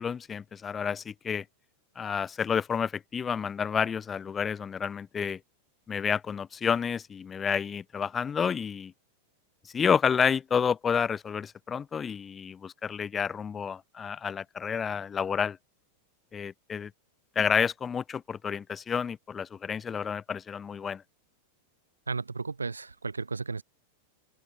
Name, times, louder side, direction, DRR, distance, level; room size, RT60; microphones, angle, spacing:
voice 1, 0.0-1.4 2.0-5.4 5.9-8.9 9.7-15.6 16.3-16.9 17.4-21.0, left 7 dB, 20° left, 0.4 m, -30 dB
voice 2, 22.1-23.6, right 4 dB, 80° right, 0.5 m, -34 dB
open air
figure-of-eight pair, 90°, 0 cm